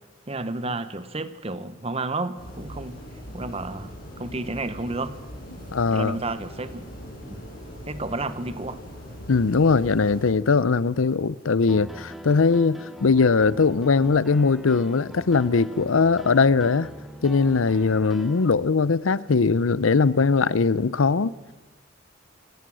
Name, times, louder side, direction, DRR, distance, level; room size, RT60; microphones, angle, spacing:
voice 1, 0.3-3.0 3.3-5.2 5.6-6.9 7.2-7.4 7.9-8.8, right 2 dB, 30° right, 1.1 m, -31 dB
sound 1, 2.4-10.3, equal, 50° left, 7.1 m, -41 dB
voice 2, 5.7-6.2 9.3-16.9 17.2-21.3, left 4 dB, 85° left, 0.6 m, -20 dB
Piano, 11.7-18.5, equal, ahead, 1.1 m, -43 dB
29.0 x 17.0 x 6.3 m
head